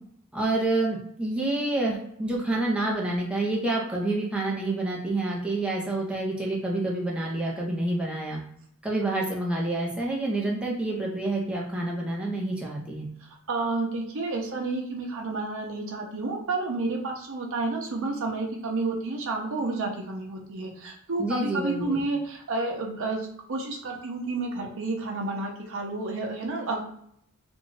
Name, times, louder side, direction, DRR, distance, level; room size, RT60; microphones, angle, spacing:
voice 1, 0.3-8.4 8.8-13.1 21.2-22.0, right 2 dB, 5° right, -3 dB, 0.5 m, -28 dB
voice 2, 13.2-26.8, right 3 dB, 65° right, 1 dB, 0.6 m, -30 dB
2.5 x 2.3 x 3.1 m, 0.70 s
head